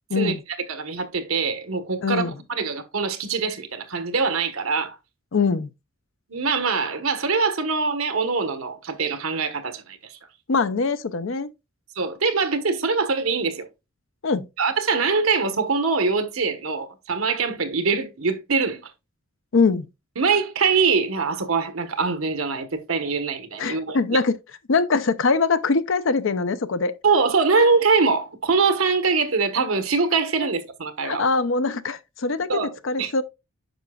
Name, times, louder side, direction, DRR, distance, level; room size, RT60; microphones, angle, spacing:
voice 1, 0.1-0.4 2.0-2.3 5.3-5.7 10.5-11.5 14.2-14.5 19.5-19.9 23.6-24.4 24.7-27.0 31.0-33.2, left 4 dB, 65° left, 0.6 m, -22 dB
voice 2, 0.7-5.0 6.3-10.2 11.9-13.7 14.6-18.8 20.2-24.0 27.0-31.2 32.5-32.7 33.0-33.2, right 4 dB, 85° right, 1.2 m, -23 dB
9.2 x 5.7 x 2.3 m
head